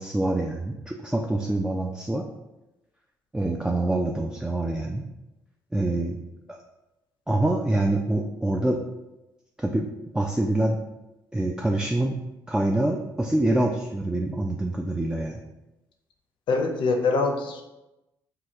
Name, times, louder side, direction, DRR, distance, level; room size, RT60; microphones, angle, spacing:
voice 1, 0.0-2.2 3.3-5.0 5.7-6.2 6.5-6.6 7.3-8.8 9.6-9.9 10.1-10.8 11.3-12.2 12.5-15.4, right 1 dB, 10° right, 1 dB, 0.3 m, -25 dB
voice 2, 16.5-17.6, left 3 dB, 60° left, 4 dB, 0.5 m, -24 dB
2.8 x 2.3 x 3.4 m, 0.98 s
hypercardioid pair, 50°, 9 cm